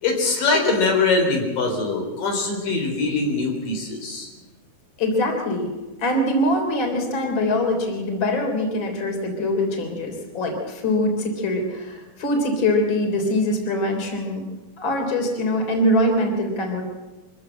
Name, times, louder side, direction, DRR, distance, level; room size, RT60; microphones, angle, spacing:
voice 1, 0.0-4.3, left 3 dB, 85° left, 2 dB, 5.5 m, -22 dB
voice 2, 5.0-5.7 6.0-14.4 14.8-16.8, left 1 dB, 35° left, 3 dB, 4.1 m, -23 dB
24.5 x 15.0 x 8.0 m, 1.2 s
omnidirectional pair, 3.7 m